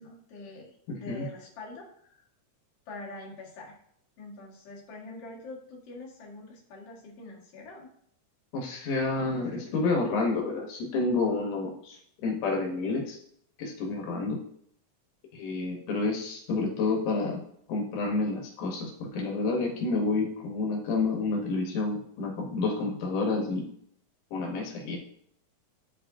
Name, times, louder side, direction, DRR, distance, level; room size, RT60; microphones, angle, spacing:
voice 1, 0.0-2.2 2.9-3.8 4.2-7.9, left 3 dB, 55° left, -4 dB, 2.5 m, -44 dB
voice 2, 0.9-1.3 8.5-13.2 13.6-14.4 15.3-17.4 17.7-23.7 24.3-25.0, left 3 dB, 85° left, 0 dB, 2.6 m, -29 dB
10.5 x 4.5 x 2.6 m, 0.67 s
omnidirectional pair, 3.6 m